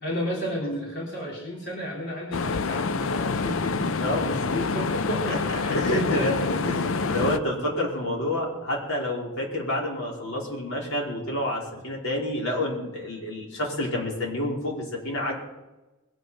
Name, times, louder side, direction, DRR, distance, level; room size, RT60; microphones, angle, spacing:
voice 1, 0.0-3.8 4.5-6.6 6.9-7.2, equal, 55° left, -3 dB, 3.4 m, -32 dB
sound 1, 2.3-7.4, left 4 dB, 70° left, 0.6 m, -27 dB
voice 2, 3.4-4.6 5.2-6.4 6.6-15.4, left 1 dB, 85° left, -2 dB, 4.8 m, -29 dB
21.5 x 8.1 x 5.8 m, 1.0 s
head